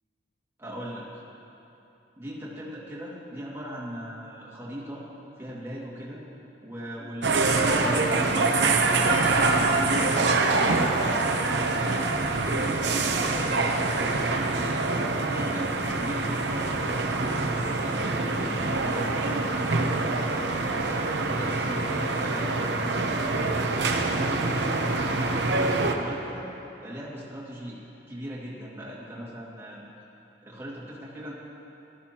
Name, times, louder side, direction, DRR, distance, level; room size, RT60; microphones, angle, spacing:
voice 1, 0.6-1.1 2.2-5.0 5.4-6.2 6.6-11.9 12.5-14.4 14.8-20.3 20.8-23.5 24.0-25.5 25.9-26.5 26.8-27.8 28.1-29.8 30.4-31.3, equal, 15° right, -7 dB, 2.2 m, -39 dB
sound 1, 7.2-25.9, right 3 dB, 75° right, 0.8 m, -25 dB
17.0 x 13.0 x 3.0 m, 2.9 s
head